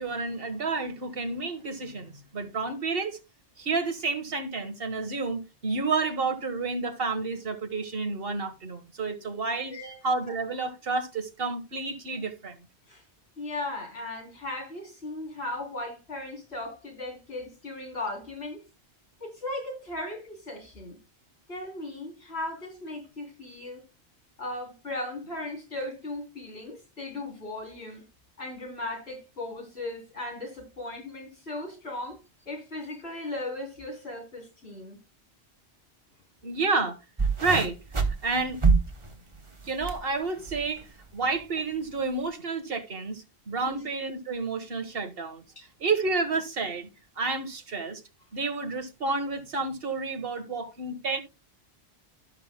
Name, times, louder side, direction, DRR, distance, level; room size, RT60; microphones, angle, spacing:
voice 1, 0.0-3.2 3.6-9.7 10.0-12.6 36.4-37.0 37.4-37.8 38.2-38.6 39.6-40.9 41.1-45.4 45.8-46.9 47.2-48.0 48.3-51.2, right 4 dB, 60° right, 1.7 m, -30 dB
voice 2, 9.7-10.0 12.9-13.0 13.4-18.6 19.2-21.0 21.5-23.8 24.4-28.0 28.4-32.2 32.5-35.0 43.6-43.8 45.6-45.7, left 2 dB, 65° left, 3.9 m, -37 dB
sound 1, 37.2-40.0 40.4-40.8 41.6-41.7, right 4 dB, 30° right, 1.1 m, -26 dB
16.5 x 5.8 x 2.2 m
omnidirectional pair, 1.1 m